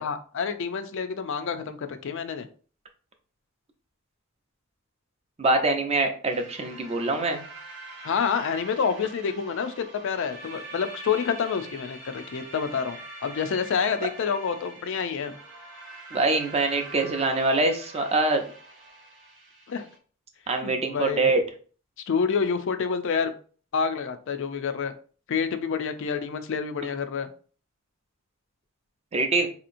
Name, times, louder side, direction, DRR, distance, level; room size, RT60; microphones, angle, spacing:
voice 1, 0.0-2.5 8.0-15.4 19.7-19.8 20.6-21.3 22.1-23.3 23.7-24.9 25.3-27.3, left 6 dB, 65° left, 9 dB, 0.4 m, -28 dB
voice 2, 5.4-7.4 16.1-18.4 20.5-21.4 29.1-29.5, right 2 dB, 30° right, 5 dB, 0.5 m, -24 dB
sound 1, 6.3-20.0, right 2 dB, 55° right, 0.9 m, -44 dB
4.1 x 2.8 x 2.5 m, 0.41 s
head